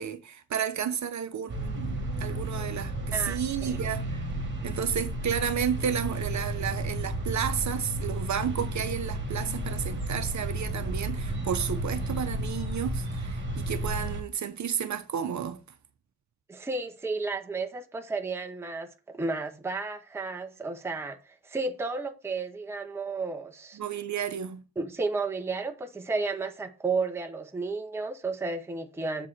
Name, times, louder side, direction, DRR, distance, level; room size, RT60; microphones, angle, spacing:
voice 1, 0.0-4.3 4.6-15.6 23.7-24.6, right 8 dB, 45° right, 0.8 m, -32 dB
sound 1, 1.5-14.2, right 1 dB, 30° right, 1.9 m, -32 dB
voice 2, 16.5-23.8 24.8-29.3, right 3 dB, 5° right, 0.7 m, -32 dB
7.5 x 4.8 x 4.1 m
cardioid pair, 140°, 39 cm